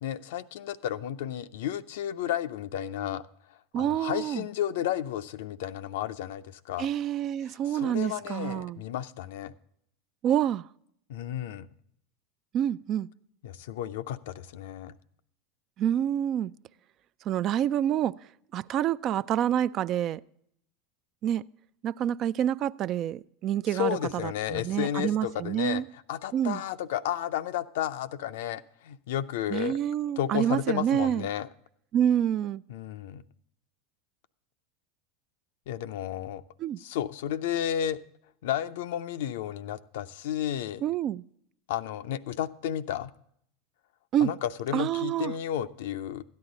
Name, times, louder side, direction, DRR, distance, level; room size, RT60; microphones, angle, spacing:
voice 1, 0.0-3.2 3.8-6.9 7.7-9.5 11.1-11.7 13.4-14.9 23.7-25.8 26.1-29.8 30.2-31.5 32.7-33.2 35.7-36.4 36.8-38.0 38.4-40.8 41.7-43.1 44.2-46.2, left 10 dB, 70° left, 0.5 m, -32 dB
voice 2, 3.7-4.5 6.8-8.8 10.2-10.7 12.5-13.1 15.8-16.5 17.3-18.1 18.5-20.2 21.2-21.4 21.8-25.9 26.3-26.6 29.5-31.3 31.9-32.6 36.6-36.8 40.8-41.2 44.1-44.3 44.7-45.3, right 10 dB, 45° right, 0.3 m, -27 dB
13.0 x 9.6 x 3.8 m
hypercardioid pair, 95°, 0 cm